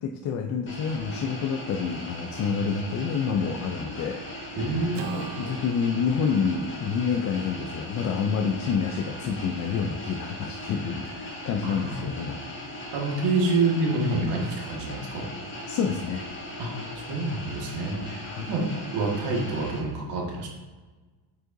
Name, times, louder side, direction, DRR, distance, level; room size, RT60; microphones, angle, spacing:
voice 1, 0.0-4.2 4.6-12.4 15.7-16.2 18.2-18.5, left 6 dB, 40° left, 4 dB, 0.4 m, -28 dB
sound 1, 0.7-19.8, left 1 dB, 25° left, 1.7 m, -39 dB
voice 2, 4.6-5.0 11.6-12.1 12.9-15.3 16.6-20.5, right 2 dB, 60° right, -1 dB, 1.8 m, -27 dB
Acoustic guitar / Strum, 4.9-9.4, right 8 dB, 40° right, 0.5 m, -42 dB
7.6 x 5.5 x 2.6 m, 1.3 s
cardioid pair, 135°, 45 cm